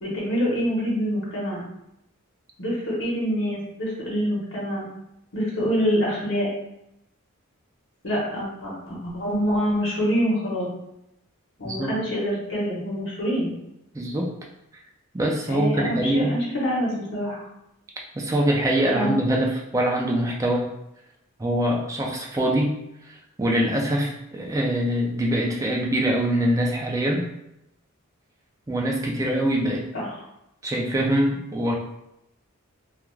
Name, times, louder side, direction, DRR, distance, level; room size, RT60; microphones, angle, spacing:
voice 1, 0.0-1.6 2.6-4.9 5.3-6.5 8.0-10.7 11.6-13.5 15.5-17.4 18.9-19.2 29.9-30.0, equal, 60° left, -6 dB, 0.9 m, -26 dB
voice 2, 13.9-14.3 15.1-16.3 18.2-20.7 21.4-22.7 23.4-27.2 28.7-29.9 30.6-31.7, right 1 dB, 15° right, -1 dB, 0.3 m, -23 dB
2.3 x 2.2 x 3.1 m, 0.84 s
head